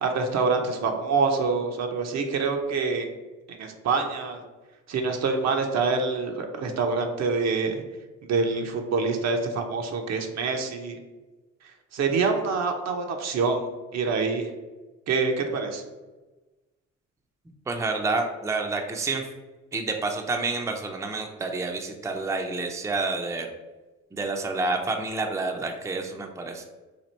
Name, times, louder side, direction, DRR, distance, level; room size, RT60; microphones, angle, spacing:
voice 1, 0.0-3.1 3.5-4.4 4.9-7.8 8.3-11.0 11.9-14.5 15.1-15.8, right 4 dB, 60° right, 4 dB, 0.7 m, -26 dB
voice 2, 17.7-19.3 19.7-23.5 24.1-26.7, right 3 dB, 10° right, 3 dB, 0.4 m, -29 dB
2.9 x 2.4 x 4.2 m, 1.2 s
supercardioid pair, 75°, 30 cm